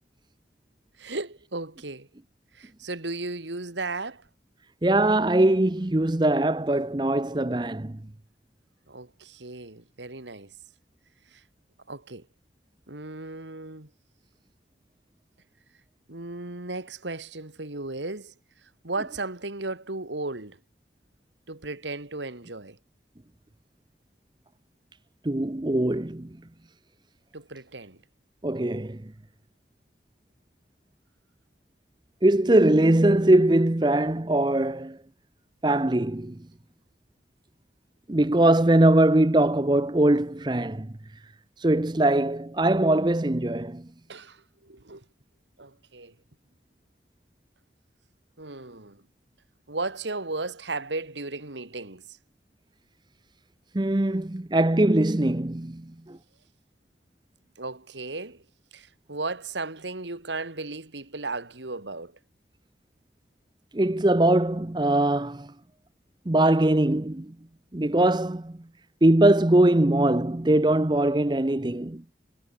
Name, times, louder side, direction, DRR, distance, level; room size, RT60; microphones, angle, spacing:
voice 1, 1.0-2.1 2.5-4.2 8.9-10.5 11.3-11.4 11.9-12.3 12.9-13.9 16.1-18.3 18.8-20.6 21.5-22.8 27.3-28.0 44.1-45.0 45.6-46.1 48.4-49.0 49.7-52.0 57.6-58.4 58.7-62.2, right 3 dB, 85° right, 2.6 m, -35 dB
voice 2, 4.8-8.0 25.2-26.3 28.4-29.0 32.2-35.0 35.6-36.4 38.1-40.9 41.6-43.8 53.7-56.2 63.7-65.5 66.3-67.3 67.7-68.6 69.0-72.1, right 1 dB, 25° right, 0.7 m, -21 dB
head